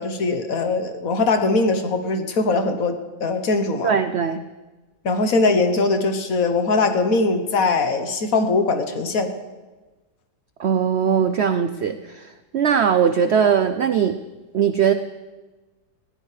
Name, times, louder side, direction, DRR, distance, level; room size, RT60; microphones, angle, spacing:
voice 1, 0.0-4.0 5.0-9.3, left 3 dB, 55° left, 7 dB, 1.4 m, -21 dB
voice 2, 3.8-4.4 10.6-14.2 14.5-14.9, right 7 dB, 80° right, 10 dB, 0.6 m, -20 dB
20.0 x 15.5 x 3.3 m, 1.2 s
omnidirectional pair, 1.8 m